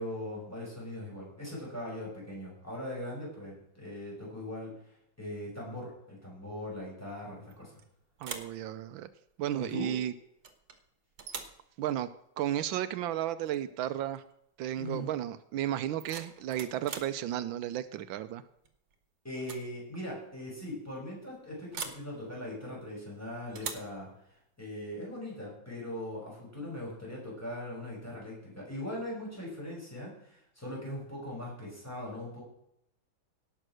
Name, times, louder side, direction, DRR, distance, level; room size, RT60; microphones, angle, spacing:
voice 1, 0.0-4.8 5.2-7.7 9.6-9.9 14.8-15.1 19.2-24.1 24.6-32.4, left 1 dB, 5° left, -5 dB, 6.6 m, -40 dB
sound 1, 7.5-7.8 8.2-8.6 10.4-10.8 11.2-11.6 13.5-13.6 14.0-14.3 15.8-17.2 18.6-18.9 19.3-19.7 19.9-20.0 21.7-22.1 23.5-23.9, right 6 dB, 70° right, 1.9 m, -42 dB
voice 2, 8.2-9.1 9.4-10.1 11.8-12.1 12.4-14.2 14.6-18.4, right 11 dB, 85° right, 13 dB, 1.4 m, -33 dB
17.5 x 6.6 x 6.3 m, 0.76 s
omnidirectional pair, 2.1 m